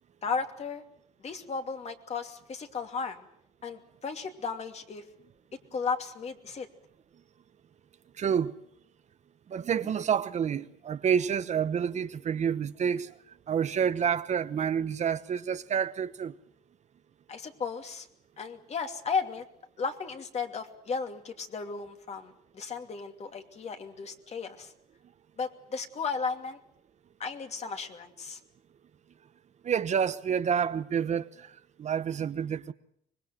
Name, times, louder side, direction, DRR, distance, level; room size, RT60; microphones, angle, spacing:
voice 1, 0.2-0.8 1.2-3.2 3.6-5.0 5.7-6.7 17.3-18.1 18.4-19.4 19.8-24.7 25.4-26.6 27.2-28.4, left 5 dB, 40° left, 2.8 m, -35 dB
voice 2, 8.2-8.5 9.5-13.1 13.5-16.4 29.6-32.7, right 7 dB, 45° right, 1.0 m, -28 dB
25.0 x 21.0 x 7.7 m
cardioid pair, 110°, 17 cm